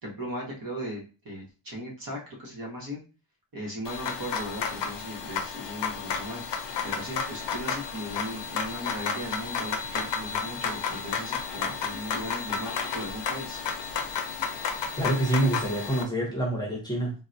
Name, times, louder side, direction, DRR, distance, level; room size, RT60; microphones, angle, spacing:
voice 1, 0.0-3.0 3.5-13.6, equal, 50° right, -2 dB, 1.1 m, -37 dB
sound 1, 3.8-16.0, left 6 dB, 70° left, 0.6 m, -32 dB
voice 2, 15.0-17.1, right 1 dB, 10° left, -3 dB, 0.7 m, -26 dB
3.8 x 2.1 x 2.6 m, 0.34 s
wide cardioid pair, 175°, 44 cm